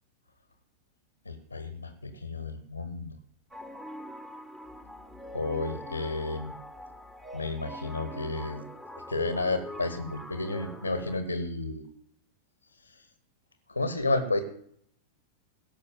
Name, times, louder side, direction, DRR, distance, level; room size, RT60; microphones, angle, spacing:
voice 1, 1.3-3.1 5.3-6.5 7.3-8.6 9.1-11.8 13.7-14.4, left 2 dB, 85° left, 11 dB, 1.2 m, -31 dB
sound 1, 3.5-11.2, left 1 dB, ahead, 1.5 m, -43 dB
17.0 x 6.4 x 7.6 m, 0.65 s
figure-of-eight pair, 90°, 0 cm